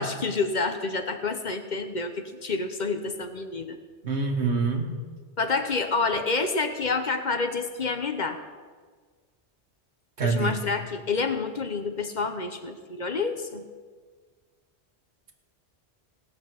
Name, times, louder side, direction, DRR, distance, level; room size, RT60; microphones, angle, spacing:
voice 1, 0.0-3.8 5.4-8.4 10.2-13.6, left 4 dB, 45° left, 8 dB, 1.0 m, -28 dB
voice 2, 4.0-4.9 10.2-10.6, right 4 dB, 85° right, 4 dB, 1.9 m, -25 dB
17.5 x 6.3 x 7.7 m, 1.5 s
omnidirectional pair, 1.1 m